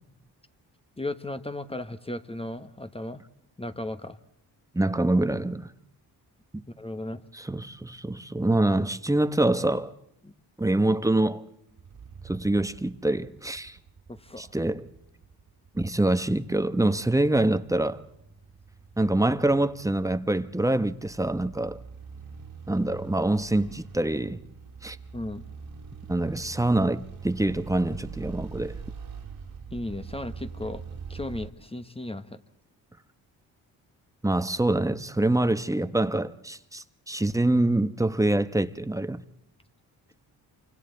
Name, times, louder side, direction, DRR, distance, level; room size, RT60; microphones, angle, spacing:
voice 1, 1.0-3.2 3.6-4.2 6.8-7.2 10.2-10.3 14.1-14.5 25.1-25.4 29.7-30.8 31.1-32.4, left 1 dB, 15° left, 1.1 m, -35 dB
voice 2, 4.7-5.7 6.5-6.6 7.3-9.9 10.6-11.5 12.2-13.8 14.4-14.9 15.7-18.0 19.0-21.8 22.7-24.4 24.8-25.0 26.1-28.8 34.2-39.2, right 1 dB, 10° right, 1.0 m, -25 dB
sound 1, 11.7-31.5, right 6 dB, 55° right, 2.4 m, -44 dB
28.0 x 25.0 x 4.0 m
cardioid pair, 65°, 41 cm